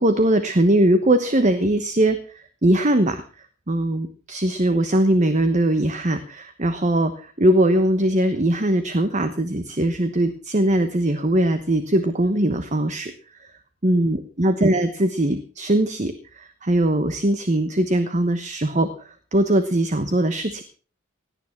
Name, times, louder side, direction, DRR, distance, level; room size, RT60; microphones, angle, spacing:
voice 1, 0.0-3.2 3.7-13.1 13.4-13.5 13.8-20.6, right 1 dB, 35° right, 10 dB, 1.1 m, -21 dB
17.5 x 9.8 x 5.9 m, 0.40 s
head